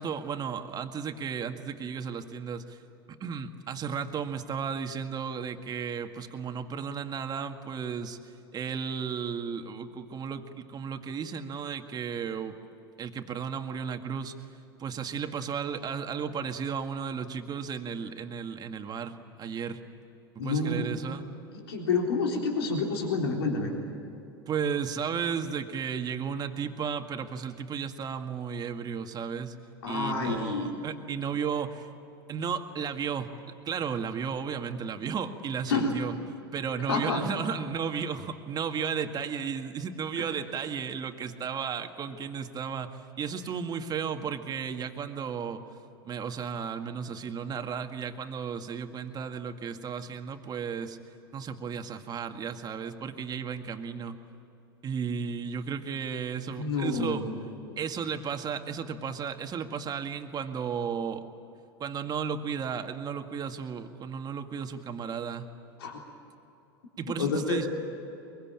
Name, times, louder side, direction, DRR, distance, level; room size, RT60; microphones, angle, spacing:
voice 1, 0.0-2.8 3.2-8.2 8.5-12.5 13.0-14.4 14.8-19.8 20.4-21.2 24.5-29.5 29.8-31.9 32.3-33.4 33.6-36.1 36.5-45.6 46.0-51.0 51.3-54.2 54.8-57.2 57.8-61.3 61.8-65.5 67.0-67.7, right 6 dB, 30° right, 6 dB, 2.0 m, -34 dB
voice 2, 20.4-20.9 21.5-23.7 29.8-30.7 35.7-36.0 36.9-37.2 40.2-40.3 56.6-57.4 57.7-57.8 65.8-66.0 67.2-67.7, left 4 dB, 80° left, 0 dB, 3.7 m, -29 dB
23.5 x 23.0 x 8.9 m, 3.0 s
hypercardioid pair, 95°, 13 cm